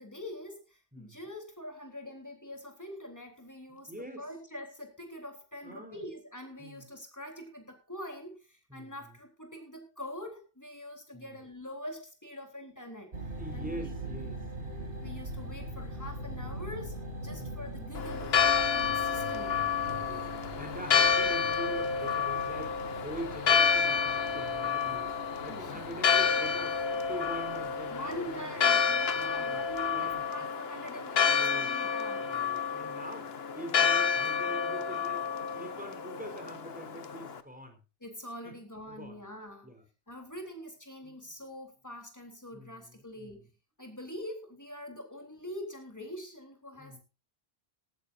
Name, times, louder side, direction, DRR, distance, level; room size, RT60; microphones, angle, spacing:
voice 1, 0.0-13.1 13.5-14.2 15.0-19.6 25.5-26.1 27.9-32.4 38.0-39.7 40.1-43.4 43.8-47.0, left 1 dB, 15° left, 4 dB, 3.7 m, -44 dB
voice 2, 3.7-4.3 5.6-6.0 6.6-6.9 8.7-9.2 11.1-11.4 13.4-14.4 17.3-17.6 18.2-18.3 19.8-28.7 29.1-29.6 29.9-30.2 31.3-31.7 32.3-35.3 35.5-37.8 38.4-38.5 38.9-39.2 39.6-39.8 41.0-41.3 42.5-43.4 46.8-47.0, equal, 5° right, 5 dB, 4.1 m, -44 dB
sound 1, 13.1-30.2, right 1 dB, 90° right, 3.0 m, -43 dB
Church bell, 17.9-37.4, left 6 dB, 65° left, 1.3 m, -29 dB
17.5 x 14.5 x 2.7 m, 0.30 s
omnidirectional pair, 1.1 m